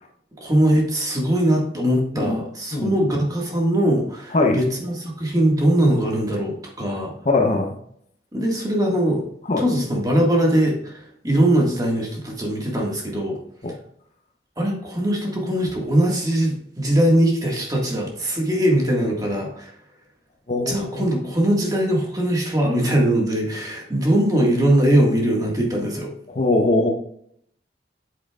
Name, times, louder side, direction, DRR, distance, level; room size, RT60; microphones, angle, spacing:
voice 1, 0.4-7.1 8.3-9.2 9.6-13.4 14.6-19.7 20.6-26.1, right 1 dB, 20° right, -1 dB, 1.7 m, -21 dB
voice 2, 7.3-7.8 9.5-9.6 13.6-13.7 20.5-21.1 26.3-26.9, left 2 dB, 40° left, 3 dB, 0.7 m, -20 dB
8.3 x 7.5 x 2.4 m, 0.68 s
head